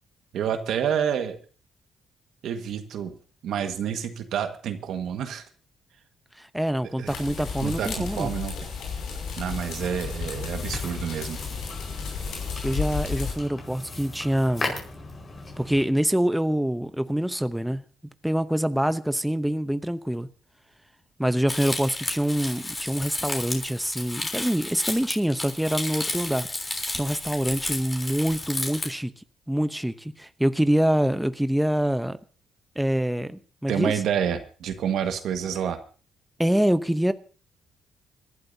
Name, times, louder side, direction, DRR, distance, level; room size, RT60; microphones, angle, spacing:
voice 1, 0.3-1.4 2.4-3.1 3.4-5.5 7.0-7.1 7.6-8.5 9.4-11.4 33.7-35.8, right 8 dB, 75° right, 7 dB, 1.6 m, -28 dB
voice 2, 6.4-8.3 12.6-14.7 15.6-17.8 18.2-20.3 21.2-26.5 26.9-32.2 32.8-33.9 36.4-37.1, equal, 5° right, 11 dB, 0.7 m, -25 dB
sound 1, 7.1-13.3, left 5 dB, 80° left, 5.9 m, -33 dB
sound 2, 9.5-15.9, left 2 dB, 40° left, 4.8 m, -38 dB
Crumpling crinkling, 21.5-28.9, left 2 dB, 20° left, 3.6 m, -32 dB
27.0 x 12.0 x 2.8 m, 0.38 s
cardioid pair, 90°, 0 cm